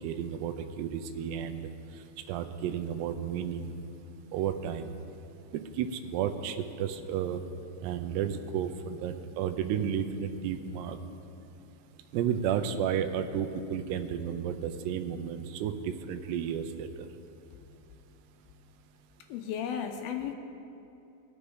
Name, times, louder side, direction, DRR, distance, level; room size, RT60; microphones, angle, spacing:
voice 1, 0.0-1.7 2.3-3.8 4.3-4.9 5.5-7.4 7.8-11.0 12.1-16.9, right 8 dB, 85° right, 8 dB, 2.7 m, -32 dB
voice 2, 19.3-20.3, left 8 dB, 80° left, 5 dB, 2.4 m, -34 dB
20.5 x 7.1 x 4.8 m, 2.7 s
omnidirectional pair, 4.7 m